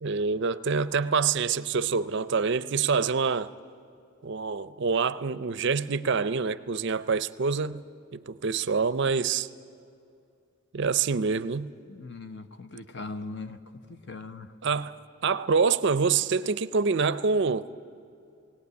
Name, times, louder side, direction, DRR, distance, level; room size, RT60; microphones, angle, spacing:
voice 1, 0.0-3.5 4.2-7.8 8.1-9.5 10.7-11.7 14.6-15.0 15.2-17.7, right 5 dB, 50° right, 0.5 m, -26 dB
voice 2, 11.9-13.6 13.9-14.5, left 3 dB, 50° left, 0.9 m, -39 dB
18.0 x 18.0 x 9.6 m
head